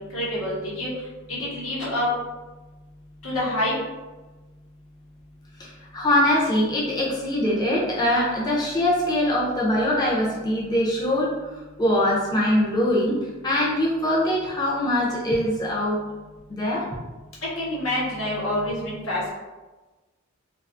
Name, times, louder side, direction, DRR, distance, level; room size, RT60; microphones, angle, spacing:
voice 1, 0.1-0.9 1.4-2.1 3.2-3.7 17.6-19.3, left 1 dB, 85° left, -6 dB, 0.9 m, -27 dB
voice 2, 5.6-11.3 11.8-13.2 13.4-16.0 16.5-16.9, left 1 dB, 20° left, -6 dB, 0.4 m, -22 dB
2.4 x 2.3 x 2.5 m, 1.2 s
head